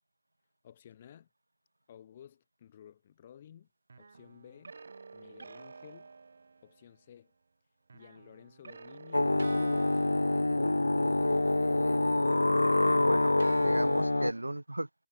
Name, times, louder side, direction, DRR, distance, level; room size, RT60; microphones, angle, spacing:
voice 1, 0.6-1.3 1.9-3.7 4.0-4.8 5.1-6.1 6.6-7.3 7.9-9.3 9.5-11.2, left 9 dB, 40° left, 4.3 m, -55 dB
sound 1, 3.9-7.0 7.9-11.6 11.8-14.4, right 4 dB, 60° right, 5.3 m, -51 dB
sound 2, 9.1-14.3, left 2 dB, 80° left, 0.4 m, -26 dB
voice 2, 12.9-15.1, right 1 dB, 80° right, 1.5 m, -37 dB
figure-of-eight pair, 140°, 0 cm